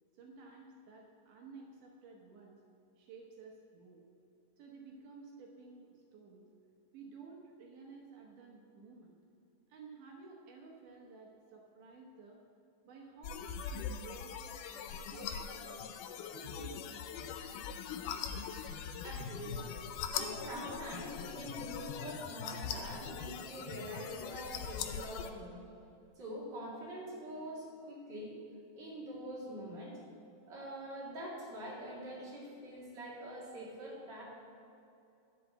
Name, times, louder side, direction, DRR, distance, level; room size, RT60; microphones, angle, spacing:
voice 1, 0.1-2.6 3.0-4.0 4.6-6.5 6.9-9.2 9.7-12.4 12.8-14.4 14.6-15.9 16.3-17.3, right 4 dB, 80° right, 0 dB, 2.5 m, -53 dB
sound 1, 13.2-25.3, left 7 dB, 85° left, 2.2 m, -41 dB
voice 2, 19.0-19.8 20.1-25.6 26.2-28.3 28.7-30.0 30.5-34.3, equal, 35° right, -5 dB, 2.8 m, -44 dB
11.0 x 5.6 x 7.8 m, 2.7 s
omnidirectional pair, 3.6 m